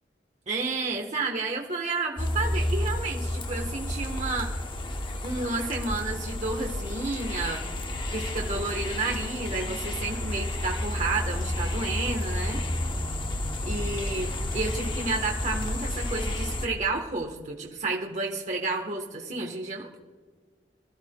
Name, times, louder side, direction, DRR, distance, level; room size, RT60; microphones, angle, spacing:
voice 1, 0.5-4.6 5.2-7.6 8.1-12.6 13.7-20.0, right 3 dB, 40° right, 1 dB, 1.1 m, -31 dB
sound 1, 2.2-16.7, left 1 dB, 30° left, 0.8 m, -31 dB
sound 2, 8.1-16.9, equal, 5° left, 1.6 m, -46 dB
24.0 x 13.0 x 2.2 m, 1.5 s
head